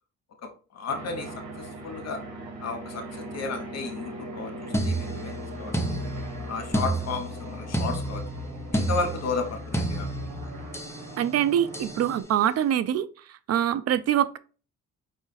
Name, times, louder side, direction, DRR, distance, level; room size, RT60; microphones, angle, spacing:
voice 1, 0.4-2.2 2.6-6.0 6.5-8.2 8.7-10.1, left 4 dB, 60° left, 0.9 m, -33 dB
sound 1, 0.9-12.2, right 1 dB, 70° right, 1.6 m, -40 dB
sound 2, 4.7-11.0 11.7-12.0, right 1 dB, 10° left, 0.7 m, -30 dB
voice 2, 11.2-13.1 13.5-14.4, right 10 dB, 55° right, 0.4 m, -24 dB
5.0 x 2.4 x 4.0 m
cardioid pair, 90°, 30 cm